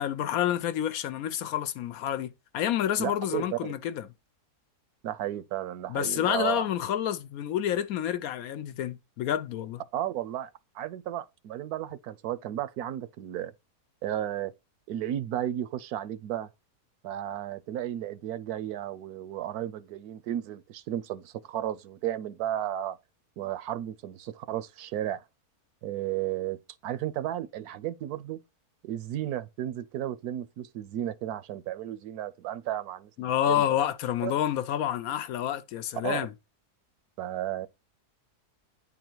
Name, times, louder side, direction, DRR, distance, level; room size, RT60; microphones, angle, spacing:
voice 1, 0.0-4.1 5.9-9.8 33.2-36.3, left 10 dB, 70° left, 1.1 m, -29 dB
voice 2, 3.0-3.7 5.0-6.7 9.9-10.5 10.7-13.5 14.0-14.5 14.9-16.5 17.0-23.0 23.4-25.2 25.8-28.4 28.8-33.7 34.2-34.3 36.0-36.2 37.2-37.7, right 12 dB, 75° right, 1.1 m, -33 dB
9.6 x 3.9 x 4.5 m
omnidirectional pair, 1.7 m